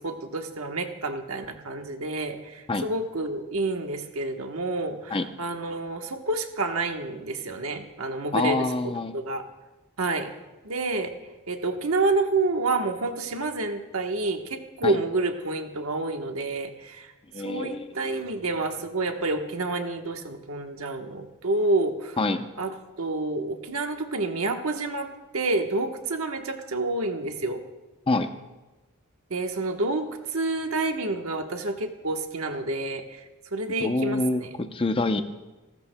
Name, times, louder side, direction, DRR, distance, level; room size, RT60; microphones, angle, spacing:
voice 1, 0.0-8.6 8.8-9.4 10.0-10.3 10.6-11.1 11.5-22.2 22.6-25.1 25.3-27.6 29.3-33.2 33.5-34.5, right 2 dB, 90° right, 5 dB, 1.2 m, -29 dB
voice 2, 8.3-9.2 14.8-14.9 17.3-17.9 22.2-22.5 28.1-28.3 33.8-35.2, left 2 dB, 25° left, 8 dB, 0.7 m, -26 dB
29.0 x 13.0 x 2.2 m, 1.1 s
head